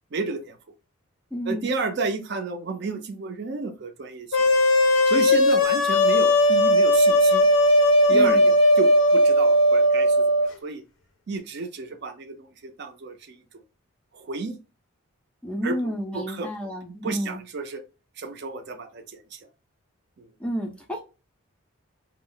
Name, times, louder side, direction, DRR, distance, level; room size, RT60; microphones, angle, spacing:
voice 1, 0.1-0.6 1.5-4.6 5.1-7.5 8.1-10.8 11.3-13.4 14.1-14.6 15.6-16.5 17.0-17.8 18.2-19.4 20.2-20.3, right 3 dB, 50° right, 6 dB, 0.5 m, -32 dB
voice 2, 1.3-1.7 8.1-8.5 15.4-17.4 20.4-21.0, equal, 5° left, 1 dB, 0.4 m, -30 dB
sound 1, 4.3-10.5, equal, 65° left, 0.5 m, -18 dB
2.3 x 2.0 x 3.8 m, 0.31 s
head